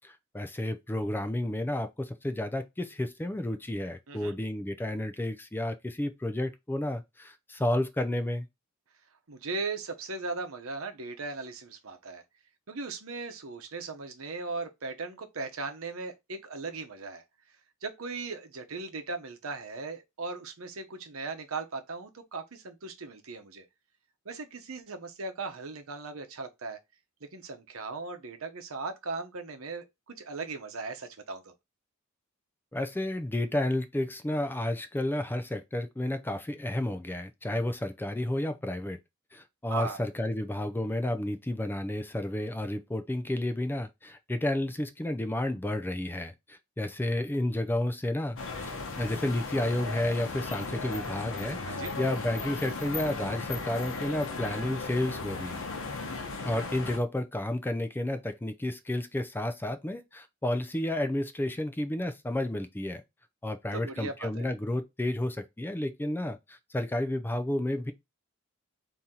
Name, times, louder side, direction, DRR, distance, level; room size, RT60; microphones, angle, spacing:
voice 1, 0.0-8.5 32.7-39.0 39.3-55.6 56.4-63.0 63.4-67.9, left 1 dB, 10° left, 0.4 m, -31 dB
voice 2, 9.3-12.2 12.7-17.2 17.8-23.6 24.2-26.8 27.2-31.5 39.7-40.0 51.6-51.9 63.7-64.5, right 3 dB, 75° right, 0.9 m, -38 dB
sound 1, 48.4-57.0, left 3 dB, 70° left, 0.8 m, -36 dB
4.2 x 2.8 x 3.7 m
head